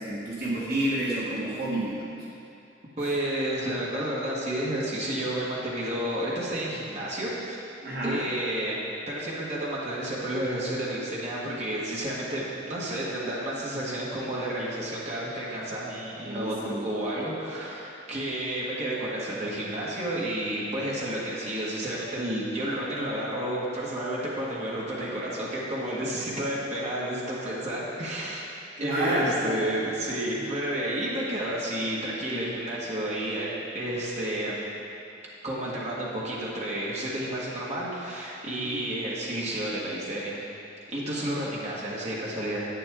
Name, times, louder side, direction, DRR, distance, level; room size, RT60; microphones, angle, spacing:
voice 1, 0.0-2.2 7.8-8.2 16.2-16.8 28.8-29.6 38.6-38.8, right 1 dB, 55° right, -7 dB, 1.5 m, -29 dB
voice 2, 3.0-7.6 8.0-16.6 16.8-28.4 28.8-34.7 35.4-40.4 40.9-42.7, right 1 dB, 40° right, -6 dB, 1.6 m, -31 dB
10.5 x 8.5 x 3.7 m, 2.6 s
head